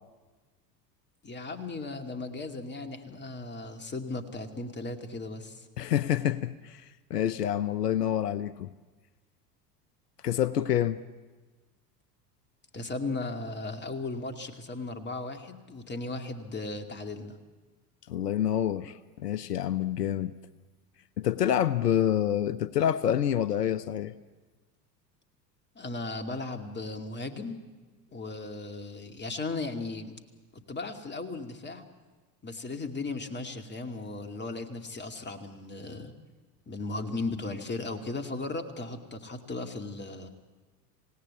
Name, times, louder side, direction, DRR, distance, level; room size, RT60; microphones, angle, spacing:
voice 1, 1.2-5.7 12.7-17.4 25.8-27.6 28.1-30.2 30.5-31.8 32.4-36.1 36.7-40.3, left 3 dB, 20° left, 6 dB, 2.4 m, -36 dB
voice 2, 5.8-8.7 10.2-11.0 18.1-20.3 21.2-24.1, left 10 dB, 80° left, 17 dB, 0.7 m, -27 dB
27.0 x 18.0 x 8.4 m, 1.3 s
figure-of-eight pair, 70°, 48 cm